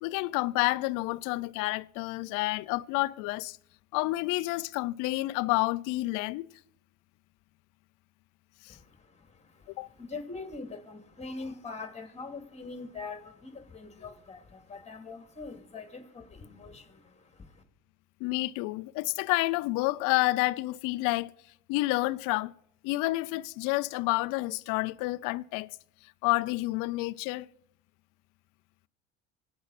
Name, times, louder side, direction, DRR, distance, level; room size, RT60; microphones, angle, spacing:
voice 1, 0.0-3.6 3.9-6.5 8.6-8.8 9.8-9.9 18.2-21.3 21.7-22.5 22.8-25.7 26.2-27.5, left 20 dB, 65° left, 0.5 m, -29 dB
voice 2, 8.7-17.6, left 3 dB, 20° left, 2.5 m, -43 dB
25.0 x 8.6 x 4.2 m
hypercardioid pair, 80°, 35 cm